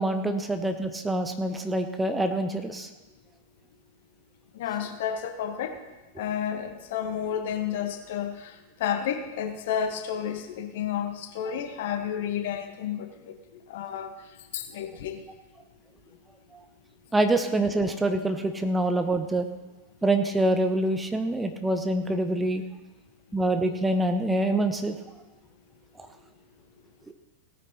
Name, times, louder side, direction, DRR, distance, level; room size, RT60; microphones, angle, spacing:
voice 1, 0.0-2.9 16.5-16.6 17.1-19.5 20.0-22.6 23.3-25.0 26.0-26.1 27.1-27.2, right 1 dB, 10° right, 7 dB, 1.0 m, -26 dB
voice 2, 4.6-5.8 6.2-8.5 8.8-13.3 13.7-14.2 14.5-15.2, left 8 dB, 55° left, 7 dB, 1.3 m, -31 dB
17.0 x 9.3 x 4.3 m, 1.1 s
figure-of-eight pair, 90°, 0 cm